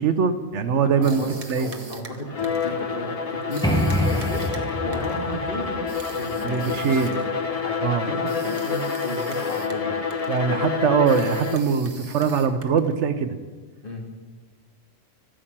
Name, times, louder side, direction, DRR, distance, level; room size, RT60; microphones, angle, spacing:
voice 1, 0.0-1.2 1.5-1.7 6.4-7.1 7.8-8.1 10.3-13.4, right 6 dB, 75° right, 10 dB, 1.2 m, -22 dB
voice 2, 0.8-7.3 7.6-10.0 13.8-14.0, equal, 50° left, 1 dB, 2.3 m, -34 dB
sound 1, 1.0-2.8 3.5-5.2 5.9-7.3 8.3-9.9 10.1-10.4 11.1-13.0, right 3 dB, 30° right, 1.1 m, -43 dB
Bowed string instrument, 2.3-11.8, left 6 dB, 35° left, 1.0 m, -28 dB
sound 2, 3.6-7.3, equal, 5° left, 0.9 m, -27 dB
13.0 x 9.8 x 7.4 m, 1.4 s
omnidirectional pair, 1.2 m